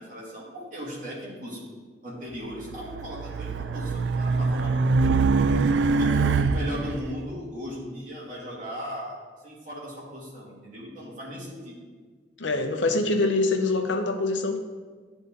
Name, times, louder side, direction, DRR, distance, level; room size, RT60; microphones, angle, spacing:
voice 1, 0.0-1.6 2.0-5.0 5.7-9.2 9.4-11.7, equal, 45° right, -6 dB, 2.3 m, -37 dB
Race car auto racing, 2.6-7.0, right 4 dB, 75° right, 0.3 m, -24 dB
voice 2, 12.4-14.6, left 2 dB, 85° left, 6 dB, 0.7 m, -24 dB
11.0 x 4.1 x 3.7 m, 1.5 s
head